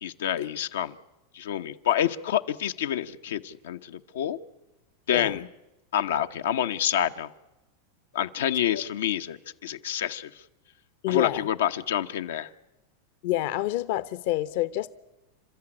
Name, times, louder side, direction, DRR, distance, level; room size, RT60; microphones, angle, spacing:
voice 1, 0.0-1.0 1.3-4.4 5.1-5.4 5.9-7.3 8.1-10.4 11.1-12.5, left 10 dB, 90° left, 1.0 m, -28 dB
voice 2, 5.1-5.5 11.0-11.5 13.2-14.9, left 14 dB, 60° left, 0.8 m, -27 dB
29.0 x 13.0 x 9.9 m
supercardioid pair, 145°, 0 cm